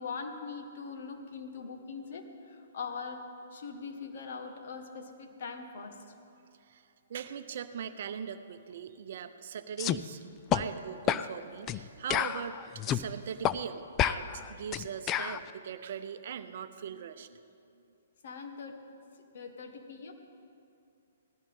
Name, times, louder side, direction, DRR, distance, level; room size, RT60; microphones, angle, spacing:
voice 1, 0.0-3.2 3.5-6.1 18.2-18.8 19.3-20.1, left 5 dB, 60° left, 4 dB, 1.6 m, -41 dB
voice 2, 7.1-17.4, right 8 dB, 55° right, 11 dB, 0.7 m, -40 dB
sound 1, 9.8-10.0 10.5-10.6 11.1-11.3 11.7-11.8 12.1-13.0 13.4-13.6 14.0-15.4, left 11 dB, 25° left, 0.4 m, -29 dB
18.5 x 14.5 x 3.7 m, 2.5 s
figure-of-eight pair, 125°, 0 cm